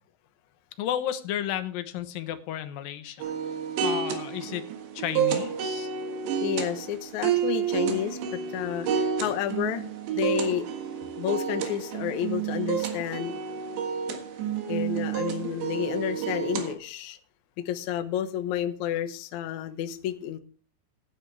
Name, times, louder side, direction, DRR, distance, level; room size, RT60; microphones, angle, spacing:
voice 1, 0.8-3.2 3.8-4.7 4.9-5.9, left 11 dB, 70° left, 10 dB, 2.3 m, -32 dB
sound 1, 3.2-16.7, right 8 dB, 90° right, 3.9 m, -30 dB
voice 2, 6.4-9.8 10.1-10.7 11.2-13.3 14.7-17.2 17.6-20.4, left 10 dB, 90° left, 8 dB, 1.6 m, -30 dB
15.5 x 10.0 x 3.4 m, 0.40 s
omnidirectional pair, 4.9 m